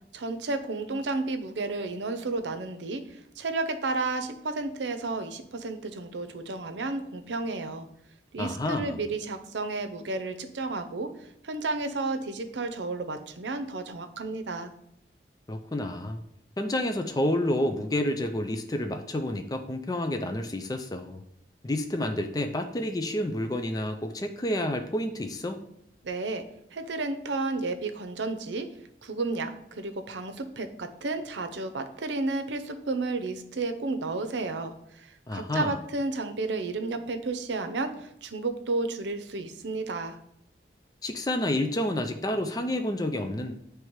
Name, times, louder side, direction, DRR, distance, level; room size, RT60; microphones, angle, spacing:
voice 1, 0.1-7.9 8.3-14.7 26.0-26.4 26.7-28.7 29.0-40.2, right 3 dB, 85° right, 8 dB, 0.7 m, -32 dB
voice 2, 8.4-9.0 15.5-16.2 16.6-21.2 21.6-25.6 35.3-35.8 41.0-43.5, left 1 dB, 20° left, 6 dB, 0.4 m, -29 dB
8.0 x 3.4 x 4.6 m, 0.77 s
head